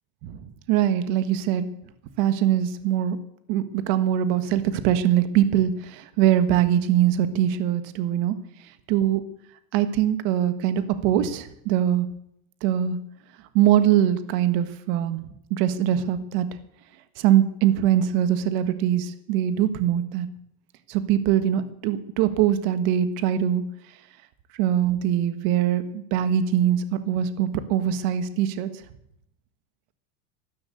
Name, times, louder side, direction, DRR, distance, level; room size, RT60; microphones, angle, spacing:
voice 1, 0.7-1.7 2.2-3.2 3.5-8.3 8.9-9.2 9.7-12.1 12.6-13.0 13.5-15.2 15.5-16.5 17.2-20.3 20.9-23.6 24.6-28.7, right 11 dB, 60° right, 11 dB, 1.6 m, -22 dB
13.0 x 11.5 x 8.3 m, 0.75 s
supercardioid pair, 145°, 42 cm